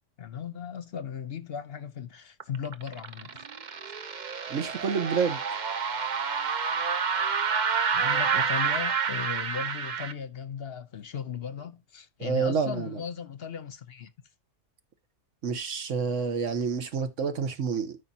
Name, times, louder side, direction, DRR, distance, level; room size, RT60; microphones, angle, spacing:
voice 1, 0.2-3.4 7.9-14.1, left 7 dB, 55° left, 0.9 m, -37 dB
sound 1, 2.4-10.1, right 6 dB, 45° right, 0.8 m, -29 dB
voice 2, 4.5-5.4 12.2-13.0 15.4-18.0, right 6 dB, 70° right, 1.4 m, -28 dB
13.5 x 5.3 x 2.8 m
omnidirectional pair, 1.3 m